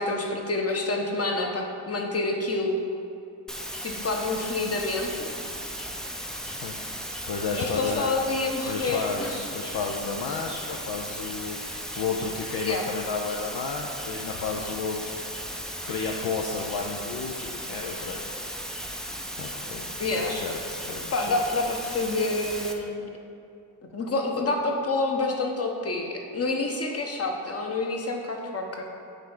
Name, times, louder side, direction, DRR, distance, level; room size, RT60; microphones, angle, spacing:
voice 1, 0.0-2.8 3.8-5.3 7.5-9.4 12.6-12.8 20.0-20.4 21.1-23.0 23.9-28.8, left 2 dB, 30° left, 2 dB, 1.1 m, -28 dB
sound 1, 3.5-22.7, equal, ahead, 0.6 m, -36 dB
voice 2, 6.5-6.9 7.3-8.1 8.7-15.1 15.6-18.3 19.4-19.9 20.2-21.4, left 4 dB, 50° left, 1 dB, 0.7 m, -32 dB
9.9 x 3.4 x 3.8 m, 2.6 s
supercardioid pair, 55°, 48 cm